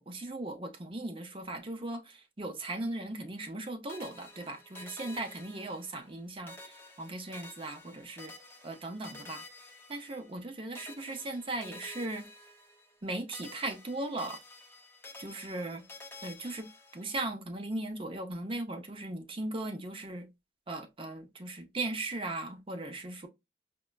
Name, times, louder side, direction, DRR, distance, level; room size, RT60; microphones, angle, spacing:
voice 1, 0.0-8.3 8.6-9.4 9.9-12.3 13.0-14.4 15.2-15.8 16.2-16.7 16.9-20.3 20.7-23.3, right 2 dB, 30° right, 0.6 m, -38 dB
sound 1, 3.9-6.2 6.5-10.5 10.7-13.1 13.3-17.2, left 2 dB, 15° left, 0.5 m, -50 dB
4.8 x 2.2 x 2.2 m
head